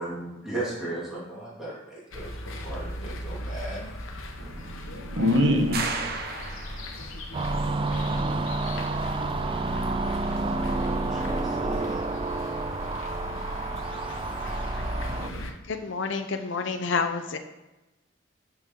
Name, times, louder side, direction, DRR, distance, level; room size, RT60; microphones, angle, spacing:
voice 1, 0.0-3.9 10.3-12.2, right 2 dB, 5° right, -8 dB, 2.5 m, -37 dB
sound 1, 2.1-15.5, left 1 dB, 90° left, 1.0 m, -37 dB
voice 2, 4.4-5.8 7.5-8.5 13.2-13.7 15.0-15.4, left 1 dB, 70° right, 3 dB, 1.3 m, -28 dB
sound 2, 5.7-7.2, right 4 dB, 50° right, 0.9 m, -33 dB
sound 3, 7.3-15.3, right 3 dB, 25° right, 0.3 m, -30 dB
voice 3, 15.7-17.4, left 4 dB, 70° left, 7 dB, 0.6 m, -29 dB
12.0 x 4.6 x 3.7 m, 1.0 s
head